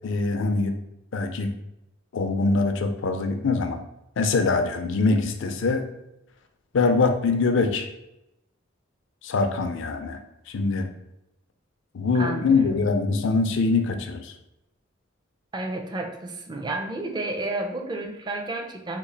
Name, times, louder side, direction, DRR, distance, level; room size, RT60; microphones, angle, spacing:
voice 1, 0.0-0.8 1.1-1.5 2.1-3.8 4.2-5.9 6.7-7.9 9.2-10.2 10.5-10.9 11.9-14.3, left 3 dB, 65° left, 6 dB, 0.4 m, -23 dB
voice 2, 12.1-12.8 15.5-19.0, right 2 dB, 20° right, 3 dB, 0.4 m, -31 dB
3.0 x 2.4 x 3.8 m, 0.86 s
head